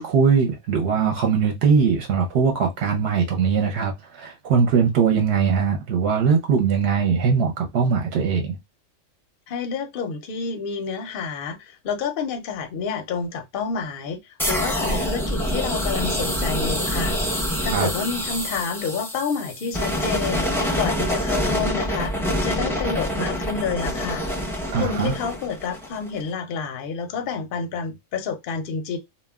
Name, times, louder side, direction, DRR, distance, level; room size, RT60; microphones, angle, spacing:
voice 1, 0.0-8.6 17.7-17.9 24.7-25.1, right 6 dB, 65° right, 0.8 m, -21 dB
voice 2, 9.5-17.2 17.6-24.2 24.7-29.0, left 5 dB, 60° left, 0.6 m, -29 dB
sound 1, 14.4-26.2, equal, 5° left, 0.3 m, -26 dB
2.2 x 2.1 x 3.4 m
omnidirectional pair, 1.4 m